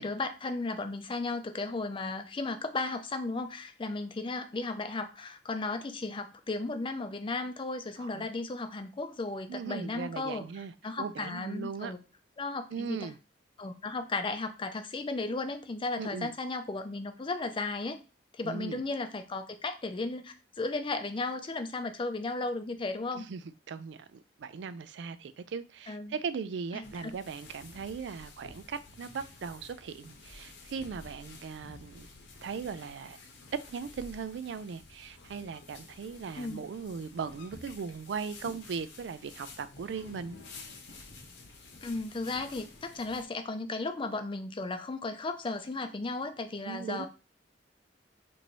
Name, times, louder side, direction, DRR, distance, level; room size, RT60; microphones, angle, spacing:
voice 1, 0.0-10.5 10.8-12.0 12.4-13.1 13.6-18.0 18.4-23.3 25.9-26.2 26.7-27.2 36.3-36.6 41.8-47.1, left 3 dB, 30° left, 0.4 m, -35 dB
voice 2, 8.0-8.3 9.5-11.9 12.7-13.2 16.0-16.3 18.4-18.8 23.1-32.1 32.4-33.2 33.5-40.4 46.6-47.1, right 5 dB, 70° right, 0.3 m, -39 dB
sound 1, 26.8-43.2, left 3 dB, 75° left, 0.9 m, -51 dB
3.0 x 2.7 x 4.4 m
head